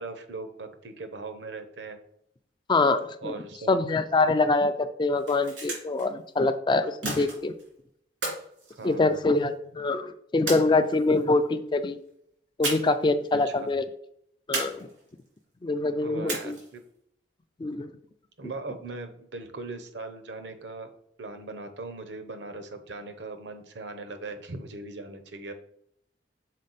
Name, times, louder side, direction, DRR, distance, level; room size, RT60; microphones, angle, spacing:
voice 1, 0.0-2.0 3.2-3.7 8.8-9.3 13.3-13.7 16.0-16.8 18.4-20.9 21.2-25.5, right 3 dB, 70° right, 7 dB, 0.9 m, -39 dB
voice 2, 2.7-3.3 3.7-7.5 8.8-12.0 12.6-13.8 14.5-14.8 15.6-16.6 17.6-17.9, left 3 dB, 25° left, 10 dB, 0.3 m, -24 dB
sound 1, 5.1-6.1 7.0-7.7 8.2-9.5 10.5-11.2 12.6-13.1 13.4-13.5 14.5-15.3 16.3-16.8, right 2 dB, 90° right, 2.8 m, -34 dB
6.3 x 4.3 x 4.1 m, 0.72 s
head